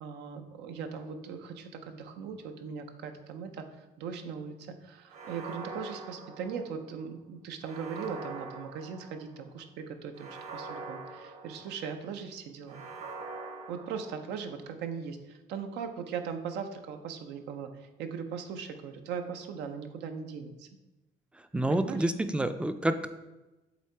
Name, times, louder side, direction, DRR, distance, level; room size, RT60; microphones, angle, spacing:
voice 1, 0.0-3.6 4.0-12.8 13.7-17.7 18.0-20.7 21.7-22.0, right 6 dB, 85° right, 7 dB, 0.7 m, -39 dB
sound 1, 5.1-7.0 7.6-9.4 10.1-12.0 12.7-14.5, right 3 dB, 45° right, 1.0 m, -43 dB
voice 2, 21.5-23.1, right 1 dB, 5° right, 10 dB, 0.4 m, -28 dB
8.0 x 2.8 x 4.4 m, 1.1 s
cardioid pair, 110°, 17 cm